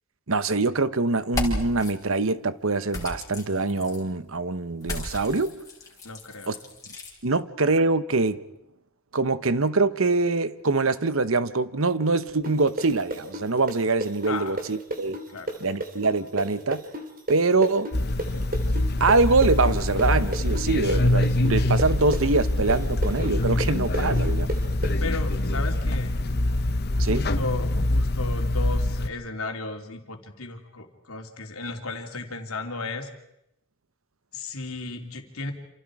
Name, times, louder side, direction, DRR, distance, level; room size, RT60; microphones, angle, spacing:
voice 1, 0.3-5.5 6.5-6.6 7.2-8.4 9.1-15.2 15.6-16.8 17.3-17.9 19.0-24.5 27.0-27.3, right 3 dB, 65° right, 1.1 m, -24 dB
sound 1, 1.2-1.9 2.9-4.0 4.8-7.1, left 1 dB, 15° left, 4.6 m, -34 dB
voice 2, 6.0-6.7 14.3-14.6 15.3-15.6 25.0-26.1 26.9-33.1 34.3-35.5, left 3 dB, 75° left, 3.1 m, -35 dB
sound 2, 12.4-20.1 20.3-24.9, right 1 dB, 40° right, 3.4 m, -32 dB
sound 3, 17.9-29.1, left 1 dB, 45° left, 1.0 m, -24 dB
28.0 x 27.5 x 4.9 m
head